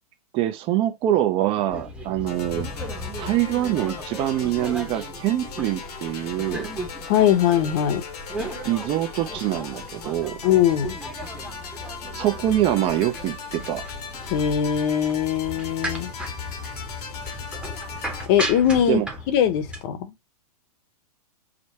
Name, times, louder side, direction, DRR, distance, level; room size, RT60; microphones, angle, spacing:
voice 1, 0.3-2.7 3.2-6.7 8.7-10.4 12.1-13.8 18.9-19.1, right 13 dB, 30° right, 0.5 m, -24 dB
People chatting on the ferry boat to Kalangala in Uganda, 1.7-19.8, equal, 5° right, 0.8 m, -36 dB
sound 1, 2.3-18.3, left 6 dB, 80° left, 1.3 m, -39 dB
voice 2, 7.1-8.0 10.4-11.0 14.3-16.1 18.3-20.1, left 9 dB, 40° left, 0.9 m, -21 dB
5.1 x 2.1 x 4.2 m
hypercardioid pair, 135°, 20 cm